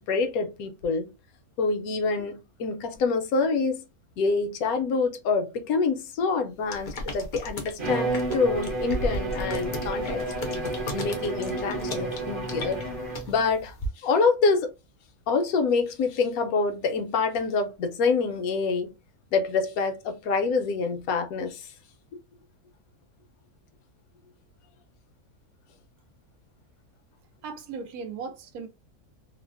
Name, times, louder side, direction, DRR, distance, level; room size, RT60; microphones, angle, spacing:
voice 1, 0.1-1.1 1.6-3.8 4.2-10.2 10.9-12.8 13.3-14.7 15.3-18.9 19.3-21.7, left 4 dB, 75° left, 1.1 m, -26 dB
sound 1, 6.7-13.9, left 1 dB, 50° left, 0.5 m, -36 dB
Bowed string instrument, 7.8-13.4, right 2 dB, 40° right, 1.0 m, -31 dB
voice 2, 27.4-28.7, right 5 dB, 85° right, 1.1 m, -37 dB
3.2 x 2.1 x 2.4 m
omnidirectional pair, 1.5 m